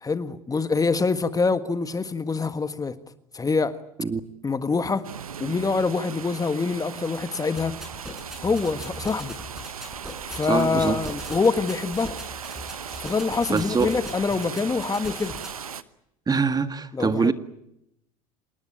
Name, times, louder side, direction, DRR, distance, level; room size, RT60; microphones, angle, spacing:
voice 1, 0.0-3.0 3.3-3.8 4.4-5.0 5.4-7.8 8.4-9.4 10.3-12.1 13.0-15.3 16.9-17.3, left 4 dB, 20° left, 1.6 m, -25 dB
sound 1, 5.0-15.8, right 7 dB, 90° right, 1.0 m, -37 dB
sound 2, 7.6-15.5, equal, 5° right, 7.1 m, -41 dB
voice 2, 10.5-11.0 13.5-14.0 16.3-17.3, right 5 dB, 20° right, 1.9 m, -23 dB
27.0 x 20.0 x 9.0 m
hypercardioid pair, 75°, 18 cm